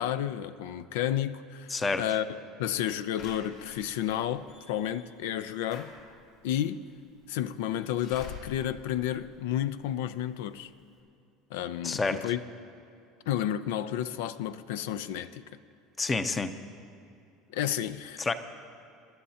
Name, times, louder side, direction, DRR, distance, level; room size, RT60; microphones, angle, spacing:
voice 1, 0.0-2.3 2.6-5.9 6.4-6.9 7.3-10.7 11.5-12.4 13.3-15.4 17.5-18.3, left 11 dB, 90° left, 0.5 m, -31 dB
voice 2, 1.7-2.0 11.8-12.2 16.0-16.5 18.2-18.3, left 3 dB, 15° left, 0.6 m, -28 dB
Slam / Alarm, 3.2-10.0 10.5-10.6 10.8-10.9, left 5 dB, 65° left, 4.2 m, -49 dB
28.5 x 12.0 x 2.8 m
cardioid pair, 150°, 0 cm